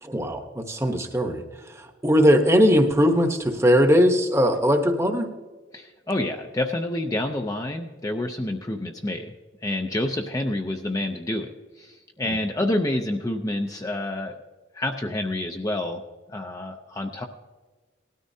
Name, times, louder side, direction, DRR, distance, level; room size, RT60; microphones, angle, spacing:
voice 1, 0.0-1.4 1.8-5.3 12.3-12.4, equal, 15° right, 5 dB, 0.9 m, -20 dB
voice 2, 5.7-9.3 9.6-14.4 14.7-16.0 16.3-17.3, left 1 dB, 20° left, 3 dB, 0.5 m, -28 dB
19.0 x 13.0 x 2.7 m, 1.4 s
head